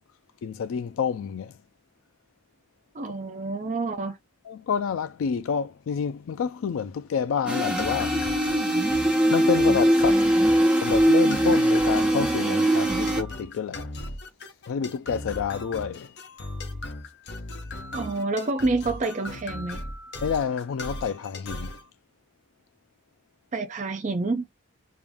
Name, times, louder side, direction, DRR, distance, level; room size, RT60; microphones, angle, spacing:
voice 1, 0.4-1.5 4.5-8.2 9.3-10.3 10.8-13.9 14.7-16.1 20.2-21.7, left 7 dB, 65° left, 0.3 m, -28 dB
voice 2, 2.9-4.2 17.9-19.8 23.5-24.5, right 3 dB, 35° right, 0.4 m, -28 dB
sound 1, 7.5-13.2, right 1 dB, 5° right, 0.8 m, -21 dB
sound 2, 7.8-21.8, left 2 dB, 50° left, 0.7 m, -38 dB
3.5 x 2.5 x 3.4 m
head